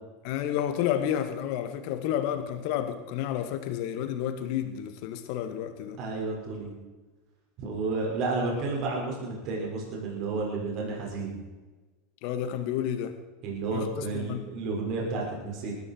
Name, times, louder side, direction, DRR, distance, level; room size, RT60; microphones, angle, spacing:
voice 1, 0.2-6.0 12.2-13.2 13.7-14.5, left 10 dB, 60° left, 2.3 m, -30 dB
voice 2, 6.0-6.7 7.6-11.4 13.4-15.7, right 3 dB, 50° right, 6.2 m, -31 dB
20.0 x 14.5 x 4.9 m
hypercardioid pair, 90°, 0 cm